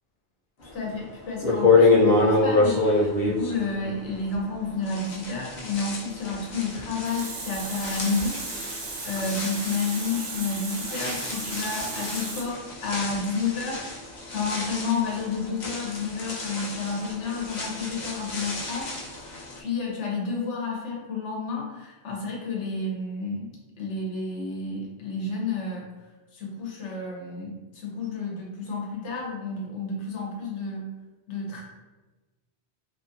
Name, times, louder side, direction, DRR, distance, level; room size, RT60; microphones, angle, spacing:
voice 1, 0.6-8.4 8.7-8.8 9.0-14.0 14.3-18.9 19.3-23.5 23.8-25.9 26.3-30.9 31.3-31.6, left 4 dB, 90° left, -2 dB, 1.1 m, -30 dB
sound 1, 0.9-1.0 1.4-4.5 4.8-19.6, left 3 dB, 50° left, 0.6 m, -27 dB
Water tap faucet, 6.8-12.4, right 3 dB, 80° right, 1.0 m, -35 dB
2.7 x 2.6 x 2.5 m, 1.2 s
omnidirectional pair, 1.2 m